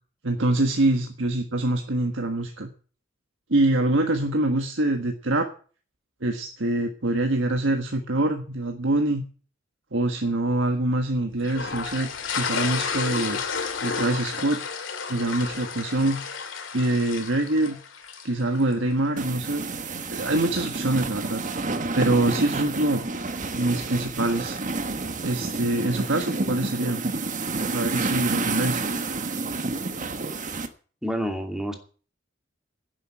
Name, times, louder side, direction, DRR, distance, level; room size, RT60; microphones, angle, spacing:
voice 1, 0.2-2.7 3.5-5.5 6.2-9.2 9.9-12.1 12.3-13.4 13.8-14.6 15.1-16.2 16.7-17.8 18.2-19.6 20.1-21.4 21.9-23.0 23.5-24.6 25.2-27.0 27.7-28.9, right 2 dB, 75° right, 4 dB, 1.5 m, -24 dB
sound 1, 11.4-18.7, left 5 dB, 90° left, 2.3 m, -31 dB
sound 2, 19.2-30.7, right 3 dB, 40° right, 1.3 m, -29 dB
voice 2, 31.0-31.7, equal, 5° right, 3 dB, 2.6 m, -28 dB
11.0 x 7.9 x 9.1 m, 0.40 s
head